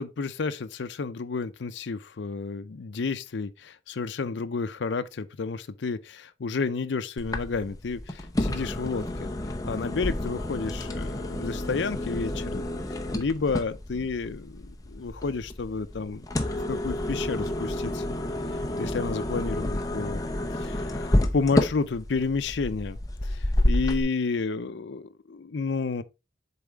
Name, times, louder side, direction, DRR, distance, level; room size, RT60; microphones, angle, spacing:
voice 1, 0.0-9.3 9.6-12.7 13.1-16.3 16.7-18.0 18.5-20.2 20.5-26.0, left 4 dB, 85° left, 0.5 m, -31 dB
sound 1, 7.2-24.0, left 1 dB, 20° left, 0.7 m, -30 dB
7.0 x 4.2 x 3.5 m
head